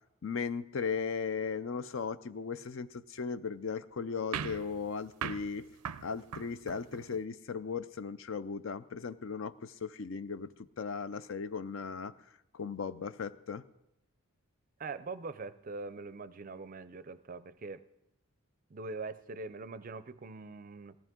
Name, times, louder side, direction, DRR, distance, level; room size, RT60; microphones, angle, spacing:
voice 1, 0.2-5.7 6.0-12.1 12.5-13.6, left 5 dB, 60° left, 14 dB, 0.5 m, -37 dB
sound 1, 4.3-7.2, right 7 dB, 90° right, 0.5 m, -41 dB
voice 2, 14.8-17.9 18.7-21.0, right 3 dB, 40° right, 14 dB, 0.4 m, -43 dB
18.5 x 15.0 x 3.7 m, 0.84 s
head